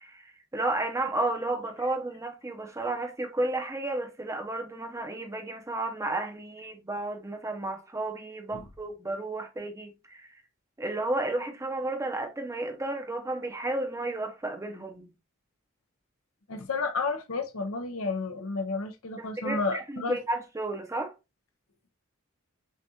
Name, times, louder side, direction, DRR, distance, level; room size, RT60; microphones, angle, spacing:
voice 1, 0.0-10.4 10.8-15.1 19.2-21.1, right 2 dB, 15° right, 0.7 m, -32 dB
voice 2, 16.5-20.2, left 3 dB, 85° left, 0.7 m, -31 dB
6.5 x 2.4 x 2.7 m
head